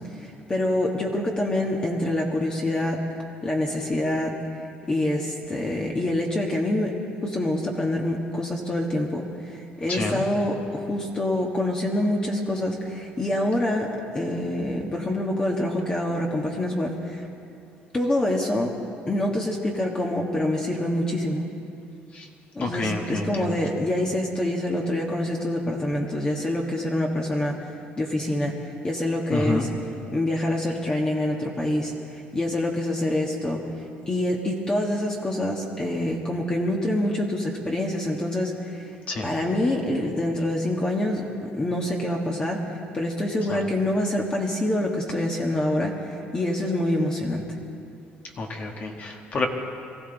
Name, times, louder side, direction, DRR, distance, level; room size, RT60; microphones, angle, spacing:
voice 1, 0.0-3.0 3.4-4.4 4.9-17.3 17.9-18.7 19.1-21.4 22.5-27.7 28.0-29.7 30.1-33.6 34.1-38.9 39.2-47.5, left 1 dB, 20° left, -1 dB, 1.5 m, -26 dB
voice 2, 9.9-10.2 22.1-22.3 22.6-23.5 29.3-29.7 39.1-39.3 43.5-43.6 48.4-49.5, left 3 dB, 40° left, 2 dB, 1.6 m, -28 dB
23.5 x 14.5 x 4.0 m, 2.6 s
cardioid pair, 120°, 4 cm